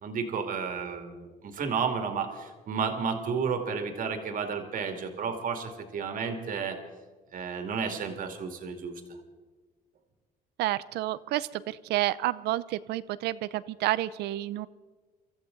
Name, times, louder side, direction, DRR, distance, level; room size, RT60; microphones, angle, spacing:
voice 1, 0.0-6.8 7.3-9.0, right 6 dB, 55° right, 5 dB, 2.3 m, -32 dB
voice 2, 10.6-14.7, right 15 dB, 80° right, 17 dB, 0.5 m, -30 dB
24.0 x 14.0 x 3.9 m, 1.4 s
cardioid pair, 110°, 17 cm